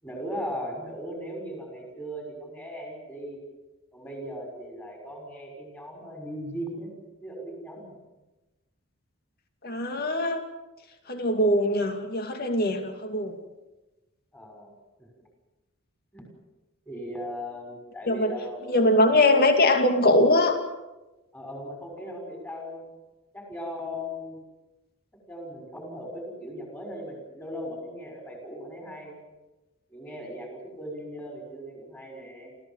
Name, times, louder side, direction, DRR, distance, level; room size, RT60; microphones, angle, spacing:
voice 1, 0.0-3.4 3.9-8.0 14.3-14.7 15.0-15.1 16.1-16.3 16.9-18.9 19.4-19.8 21.3-22.9 23.3-24.4 25.3-29.1 29.9-32.5, equal, 10° left, 2 dB, 6.1 m, -38 dB
voice 2, 9.6-10.4 11.1-13.4 18.1-18.4 18.7-20.6, left 1 dB, 45° left, 5 dB, 2.5 m, -22 dB
30.0 x 15.0 x 7.5 m, 1.1 s
head